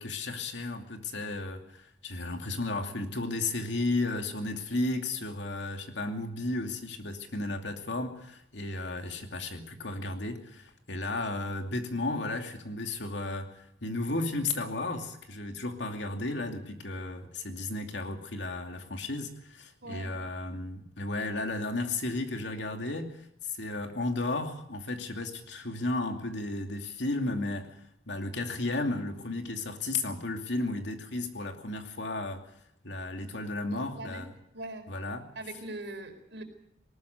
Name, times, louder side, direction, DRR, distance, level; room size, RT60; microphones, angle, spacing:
voice 1, 0.0-27.7 28.1-32.4 32.8-34.3 34.9-35.3, left 2 dB, 70° left, 5 dB, 2.6 m, -34 dB
voice 2, 19.8-20.1 33.7-34.2 34.5-34.9 35.4-36.4, right 2 dB, 65° right, 5 dB, 4.4 m, -41 dB
19.5 x 19.5 x 7.9 m, 0.75 s
head